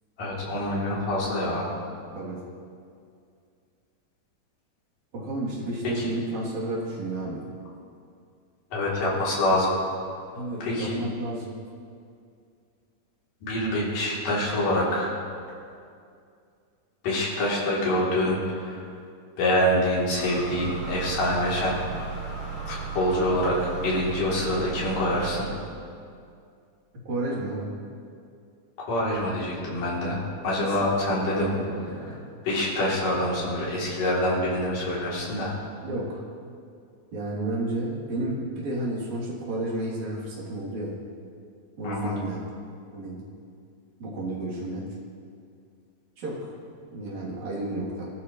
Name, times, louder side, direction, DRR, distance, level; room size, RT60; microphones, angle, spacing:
voice 1, 0.2-1.7 8.7-9.7 10.6-11.0 13.4-15.1 17.0-18.8 19.4-21.8 22.9-25.4 28.8-31.5 32.4-35.5 41.8-42.1, left 1 dB, 80° left, -7 dB, 5.2 m, -25 dB
voice 2, 5.1-7.4 10.3-11.5 27.1-27.7 30.6-32.2 35.8-36.2 37.1-41.0 41.8-42.4 42.9-43.2 44.0-44.9 46.2-48.1, right 2 dB, 60° right, -6 dB, 4.6 m, -32 dB
sound 1, 20.2-25.4, right 4 dB, 35° right, 6.0 m, -35 dB
25.5 x 14.5 x 3.3 m, 2.3 s
omnidirectional pair, 3.7 m